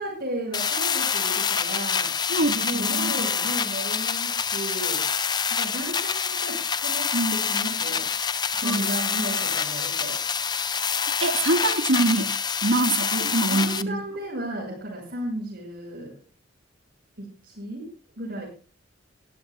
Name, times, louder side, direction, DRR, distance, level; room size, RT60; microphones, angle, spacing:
voice 1, 0.0-5.0 5.5-8.1 8.5-10.1 13.5-16.1 17.2-17.9 18.1-18.4, right 1 dB, 55° right, -5 dB, 6.5 m, -34 dB
sound 1, 0.5-13.8, left 6 dB, 20° left, 0.5 m, -26 dB
voice 2, 2.3-3.3 7.1-7.3 8.6-9.0 10.7-10.8 11.2-12.3 12.6-14.0, right 2 dB, 85° right, 7 dB, 1.7 m, -25 dB
22.0 x 15.0 x 2.3 m, 0.37 s
head